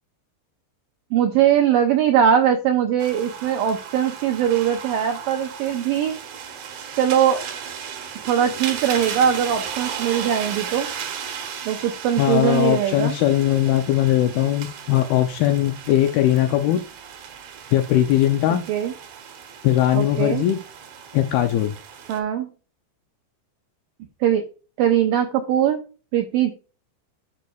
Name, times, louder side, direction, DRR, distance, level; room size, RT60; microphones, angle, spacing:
voice 1, 1.1-6.1 7.0-7.4 8.3-10.9 11.7-13.1 18.7-18.9 19.9-20.5 22.1-22.5 24.2-24.4 24.8-25.8 26.1-26.5, right 9 dB, 85° right, 5 dB, 2.0 m, -21 dB
sound 1, 3.0-22.2, right 7 dB, 65° right, 1.9 m, -35 dB
voice 2, 12.2-16.8 17.7-18.6 19.6-20.6 21.1-21.7, left 12 dB, 85° left, 6 dB, 2.2 m, -20 dB
11.5 x 6.2 x 2.4 m, 0.35 s
omnidirectional pair, 4.9 m